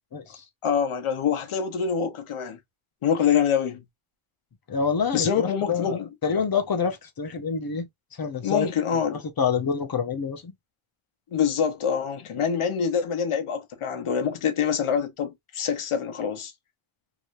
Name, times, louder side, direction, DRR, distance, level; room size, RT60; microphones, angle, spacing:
voice 1, 0.1-0.4 4.7-7.9 8.2-8.7 9.1-10.5, left 6 dB, 45° left, 0.9 m, -27 dB
voice 2, 0.6-2.6 3.0-3.8 5.1-6.1 8.4-9.2 11.3-16.5, left 7 dB, 85° left, 1.0 m, -25 dB
3.1 x 2.9 x 2.6 m
wide cardioid pair, 120°, 49 cm